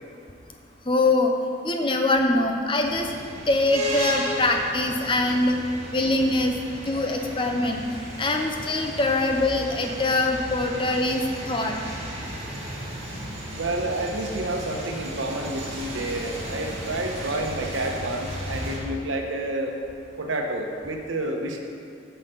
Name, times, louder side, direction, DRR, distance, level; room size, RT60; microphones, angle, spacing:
voice 1, 0.9-1.3 1.6-3.1 3.5-5.6 5.9-6.5 6.8-7.8 8.2-11.2 11.5-11.8 16.2-16.3, left 2 dB, 25° left, 3 dB, 0.7 m, -23 dB
sound 1, 2.8-18.8, equal, 30° right, 1.8 m, -35 dB
voice 2, 13.5-19.7 20.2-21.6, right 1 dB, 80° right, 2 dB, 1.1 m, -29 dB
9.1 x 5.6 x 6.8 m, 2.5 s
head